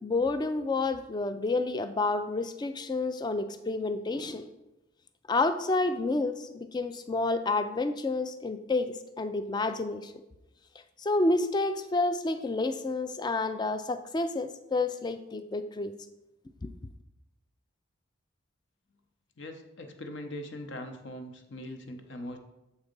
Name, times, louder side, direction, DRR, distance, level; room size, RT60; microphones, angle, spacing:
voice 1, 0.0-4.5 5.3-10.1 11.0-15.9, left 2 dB, 20° left, 10 dB, 0.3 m, -29 dB
voice 2, 19.4-22.4, left 1 dB, 60° left, 5 dB, 0.8 m, -41 dB
7.0 x 4.1 x 5.2 m, 0.96 s
head